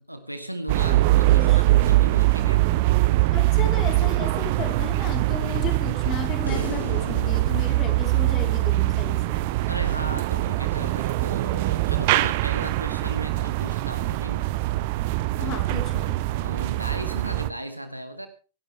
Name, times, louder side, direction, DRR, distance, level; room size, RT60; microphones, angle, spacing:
voice 1, 0.0-2.7 9.7-14.5 15.4-15.6 16.4-18.3, right 1 dB, 90° right, 1.8 m, -36 dB
sound 1, 0.7-17.5, right 17 dB, 50° right, 0.7 m, -23 dB
voice 2, 1.3-1.9 3.3-9.4 15.4-16.2, left 6 dB, 35° left, 3.9 m, -34 dB
sound 2, 6.5-9.8 12.6-12.7, left 2 dB, 85° left, 6.2 m, -39 dB
24.5 x 11.5 x 3.4 m
figure-of-eight pair, 90°, 0 cm